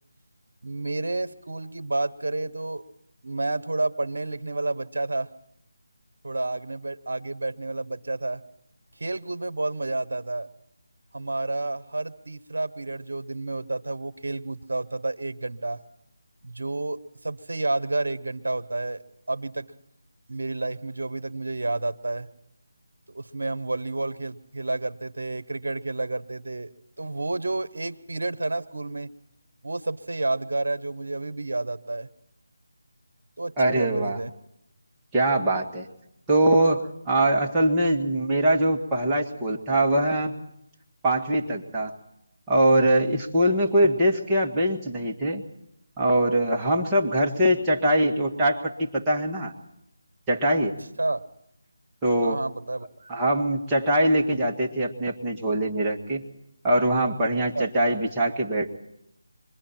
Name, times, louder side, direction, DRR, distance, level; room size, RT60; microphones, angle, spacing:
voice 1, 0.6-2.8 3.2-5.3 6.2-8.4 9.0-10.5 11.1-15.8 16.4-19.0 19.3-19.7 20.3-22.3 23.1-26.7 27.0-29.1 29.6-32.1 33.4-34.3 51.0-51.2 52.2-53.1 57.5-57.7, right 2 dB, 70° right, 13 dB, 1.1 m, -30 dB
voice 2, 33.6-34.2 35.1-35.9 36.3-40.4 41.0-41.9 42.5-45.4 46.0-49.5 50.3-50.7 52.0-52.4 53.1-56.2 56.6-58.7, right 1 dB, 10° right, -3 dB, 1.7 m, -22 dB
26.0 x 22.5 x 4.4 m, 0.80 s
figure-of-eight pair, 160°, 0 cm